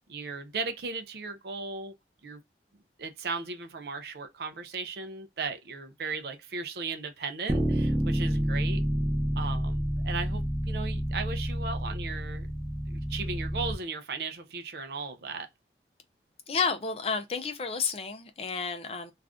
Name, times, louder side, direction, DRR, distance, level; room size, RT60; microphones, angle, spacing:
voice 1, 0.1-1.9 2.2-2.4 3.0-8.8 9.4-12.5 12.9-15.5, right 4 dB, 60° right, 0.5 m, -36 dB
Bass guitar, 7.5-13.7, equal, 5° right, 0.7 m, -29 dB
voice 2, 16.5-19.1, left 5 dB, 35° left, 0.4 m, -31 dB
2.5 x 2.4 x 3.4 m
head